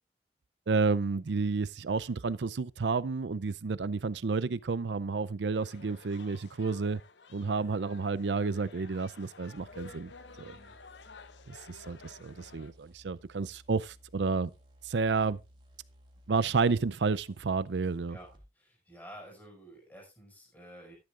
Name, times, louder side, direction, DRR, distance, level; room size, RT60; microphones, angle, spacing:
voice 1, 0.7-7.0 7.3-10.1 10.4-10.6 11.5-14.5 14.8-15.4 16.3-18.2, right 4 dB, 80° right, 0.5 m, -30 dB
sound 1, 5.5-12.7, left 4 dB, 90° left, 0.9 m, -52 dB
sound 2, 9.6-18.5, equal, 25° right, 2.1 m, -58 dB
voice 2, 10.4-10.8 18.1-18.3 18.5-21.0, equal, 10° left, 5.5 m, -51 dB
13.0 x 10.5 x 2.5 m
head